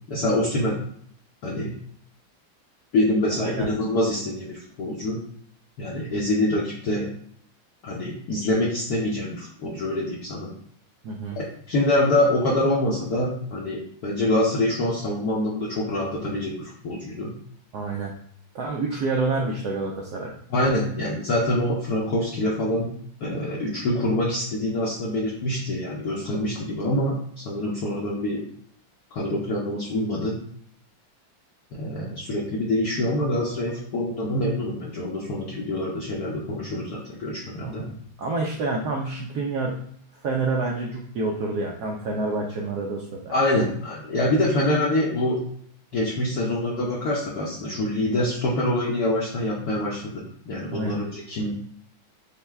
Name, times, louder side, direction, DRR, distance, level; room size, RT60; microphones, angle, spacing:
voice 1, 0.1-0.8 1.4-1.7 2.9-5.2 5.8-7.1 7.8-10.5 11.3-17.3 20.5-22.9 23.2-28.4 29.1-30.4 31.7-37.8 43.3-45.4 45.9-51.5, left 1 dB, 65° left, -3 dB, 1.0 m, -25 dB
voice 2, 11.0-11.4 17.7-18.1 18.5-20.3 31.9-32.2 37.6-39.8 40.2-43.7 50.7-51.1, right 3 dB, 75° right, -1 dB, 0.9 m, -28 dB
5.3 x 2.2 x 3.3 m, 0.64 s
omnidirectional pair, 2.2 m